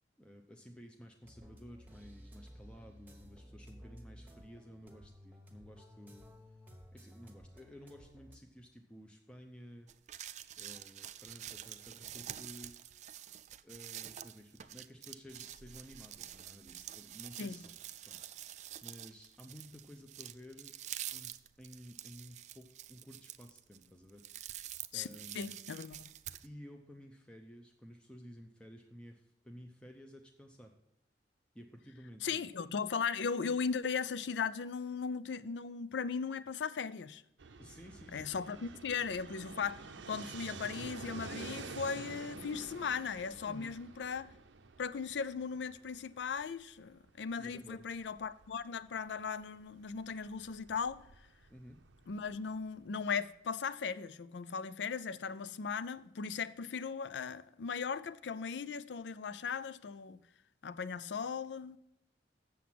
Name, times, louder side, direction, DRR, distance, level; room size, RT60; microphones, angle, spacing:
voice 1, 0.2-6.3 6.9-10.2 10.6-13.0 13.6-17.8 18.1-20.8 21.1-25.6 26.4-30.7 31.5-32.4 37.6-38.8 43.5-43.7 47.4-47.8 51.5-51.8, equal, 5° left, 0.6 m, -54 dB
sound 1, 1.2-8.4, equal, 10° right, 1.2 m, -55 dB
sound 2, 9.9-26.5, right 12 dB, 40° right, 0.3 m, -47 dB
voice 2, 25.3-26.1 32.2-37.2 38.1-39.8 40.1-44.3 44.8-51.0 52.1-60.2 60.6-61.8, left 6 dB, 75° left, 0.4 m, -38 dB
Fixed-wing aircraft airplane, 37.4-53.1, right 4 dB, 85° right, 0.6 m, -50 dB
7.7 x 7.1 x 5.9 m
head